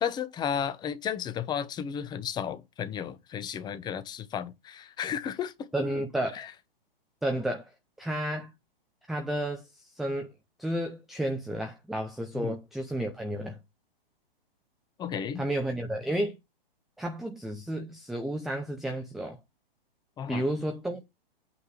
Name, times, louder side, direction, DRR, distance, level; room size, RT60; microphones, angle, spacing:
voice 1, 0.0-5.7 6.3-6.5 12.3-12.5 15.0-15.5 20.2-20.4, left 8 dB, 15° left, 0.8 m, -33 dB
voice 2, 5.7-6.5 7.2-7.7 8.0-8.5 9.1-9.7 10.0-10.3 10.6-13.6 15.4-16.4 17.0-19.4 20.3-21.0, right 1 dB, ahead, 0.4 m, -31 dB
8.4 x 3.6 x 6.5 m
hypercardioid pair, 135°, 29 cm